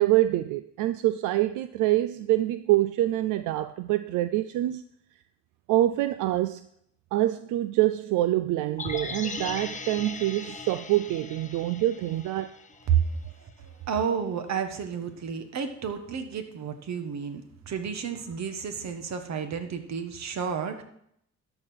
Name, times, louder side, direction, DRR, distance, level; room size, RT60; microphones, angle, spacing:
voice 1, 0.0-4.8 5.7-6.7 7.1-12.5, right 15 dB, 90° right, 0.5 m, -25 dB
sound 1, 8.8-13.0 13.3-13.4, left 4 dB, 25° left, 1.0 m, -38 dB
voice 2, 12.9-20.8, right 7 dB, 65° right, 1.5 m, -31 dB
13.0 x 4.9 x 5.7 m
cardioid pair, 90°, 30 cm